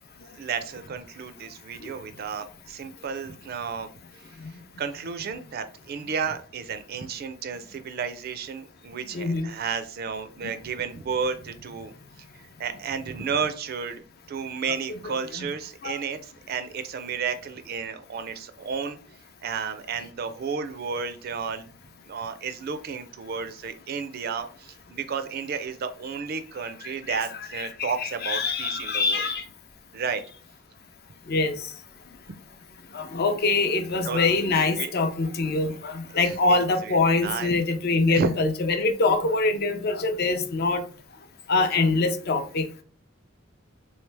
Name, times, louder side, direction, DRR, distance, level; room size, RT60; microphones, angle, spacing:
voice 1, 0.3-3.9 4.8-11.9 12.6-14.0 14.3-19.0 19.4-21.7 22.1-29.3 29.9-30.2 34.0-34.3 34.8-34.9 36.1-37.0 37.2-37.5 38.1-38.3, right 5 dB, 50° right, 10 dB, 0.4 m, -32 dB
voice 2, 9.1-9.5 10.4-10.5 15.0-15.5 15.8-16.0 26.8-27.2 27.6-29.5 31.3-31.7 32.9-40.8 41.5-42.8, left 3 dB, 50° left, 8 dB, 0.5 m, -24 dB
3.2 x 3.2 x 3.3 m, 0.42 s
head